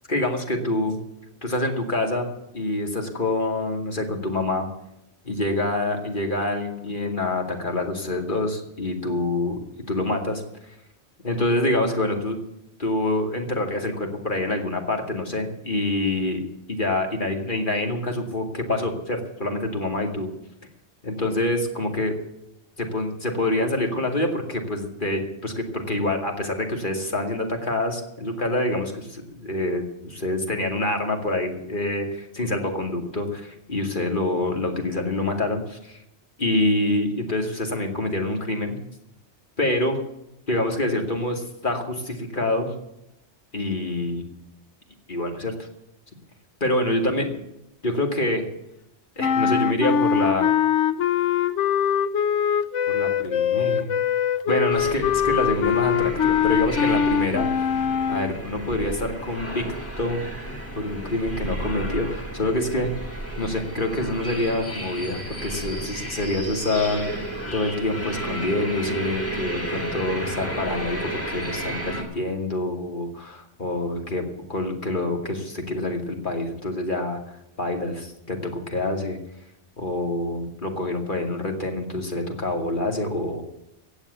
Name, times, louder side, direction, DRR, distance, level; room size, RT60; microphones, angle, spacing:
voice 1, 0.1-1.0 1.4-2.3 2.5-4.7 5.2-9.6 9.9-10.4 11.2-12.4 12.8-16.4 16.7-20.3 21.0-22.2 22.8-36.0 36.4-38.8 39.6-40.0 40.5-42.7 43.5-44.2 45.1-45.7 46.6-47.3 47.8-48.4 49.2-50.5 52.9-53.9 54.5-57.5 58.1-59.6 60.0-60.2 60.8-62.9 63.4-67.1 67.5-74.2 74.5-79.2 79.8-83.4, left 2 dB, 45° left, 3 dB, 2.6 m, -26 dB
sound 1, 49.2-58.4, left 8 dB, 85° left, 1.1 m, -22 dB
sound 2, 54.7-72.0, right 1 dB, 10° left, 2.9 m, -33 dB
16.0 x 8.2 x 8.3 m, 0.84 s
omnidirectional pair, 1.2 m